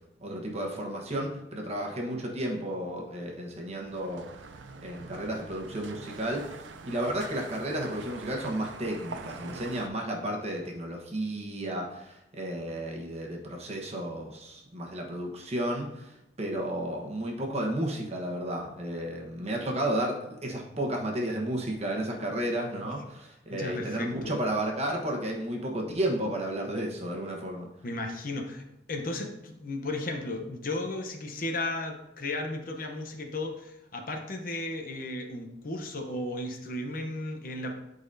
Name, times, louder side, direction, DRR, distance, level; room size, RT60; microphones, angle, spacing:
voice 1, 0.2-4.4 4.8-16.1 16.4-27.7, right 1 dB, 35° right, 0 dB, 1.2 m, -32 dB
sound 1, 3.6-9.9, right 4 dB, 85° right, 0.5 m, -44 dB
voice 2, 23.5-24.3 27.8-37.7, left 2 dB, 50° left, 3 dB, 0.8 m, -35 dB
11.5 x 4.0 x 2.7 m, 0.90 s
head